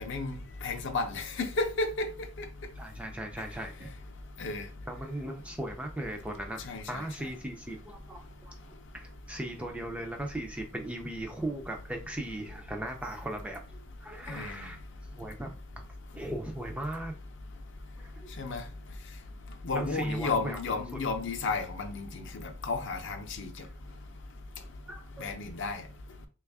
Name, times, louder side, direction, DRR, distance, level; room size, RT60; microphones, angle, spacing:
voice 1, 0.1-2.1 2.4-2.5 4.4-4.6 6.6-7.1 14.3-14.7 18.4-18.6 19.6-23.5 25.2-25.8, left 3 dB, 55° left, 0.5 m, -33 dB
voice 2, 2.7-3.9 4.9-6.6 6.9-8.5 8.9-14.8 15.2-15.5 16.1-17.1 18.0-18.3 19.7-20.6 23.6-23.7 24.9-25.3, right 1 dB, 5° right, 0.3 m, -38 dB
3.3 x 2.3 x 3.4 m
head